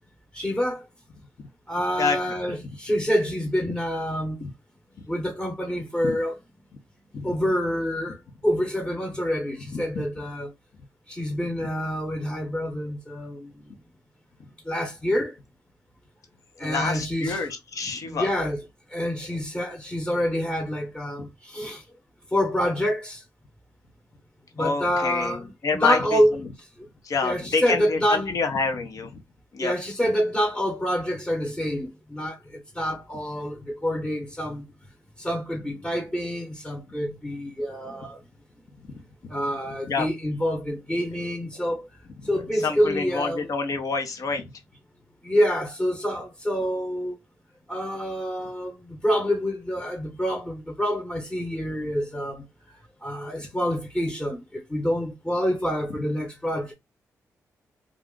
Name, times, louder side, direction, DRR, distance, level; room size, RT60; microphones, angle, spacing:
voice 1, 0.3-0.9 1.7-4.4 5.1-6.4 7.2-10.5 11.1-13.8 14.6-15.4 16.6-17.5 18.0-18.6 18.9-21.8 22.3-23.2 24.5-26.4 26.8-26.9 27.2-28.3 29.6-34.7 35.2-38.2 39.3-41.9 42.2-43.5 45.2-47.2 47.7-52.4 53.0-56.7, equal, 15° left, 1.0 m, -27 dB
voice 2, 2.0-2.4 4.4-4.5 6.0-6.2 7.1-7.3 9.7-10.0 16.6-18.3 24.6-26.2 27.0-29.1 29.5-29.7 39.8-40.1 42.6-44.5, left 4 dB, 60° left, 0.8 m, -28 dB
2.4 x 2.3 x 3.7 m
supercardioid pair, 55°, 7 cm